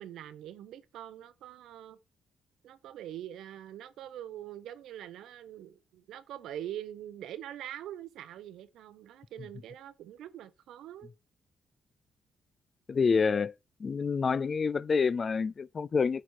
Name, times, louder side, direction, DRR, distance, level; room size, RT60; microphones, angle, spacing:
voice 1, 0.0-2.0 2.6-11.1, right 11 dB, 85° right, 0.8 m, -44 dB
voice 2, 12.9-13.5 13.8-16.2, left 5 dB, 40° left, 0.3 m, -27 dB
8.3 x 4.2 x 4.6 m
cardioid pair, 95°, 0 cm